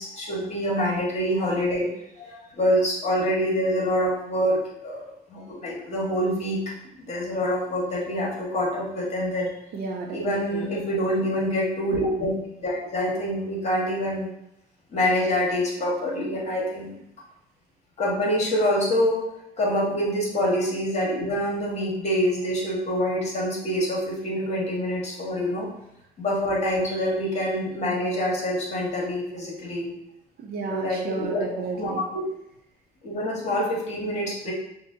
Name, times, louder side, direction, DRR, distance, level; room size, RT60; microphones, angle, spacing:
voice 1, 0.0-1.9 2.2-5.0 5.3-6.6 7.0-9.5 10.1-12.3 12.6-14.3 14.9-16.9 18.0-19.2 19.6-25.7 26.2-29.9 30.7-31.4 31.8-32.2 33.0-34.5, equal, 40° left, -3 dB, 1.5 m, -26 dB
voice 2, 9.7-10.7 30.4-32.1, right 4 dB, 65° right, 1 dB, 0.8 m, -32 dB
5.8 x 2.3 x 2.8 m, 0.83 s
cardioid pair, 110°, 17 cm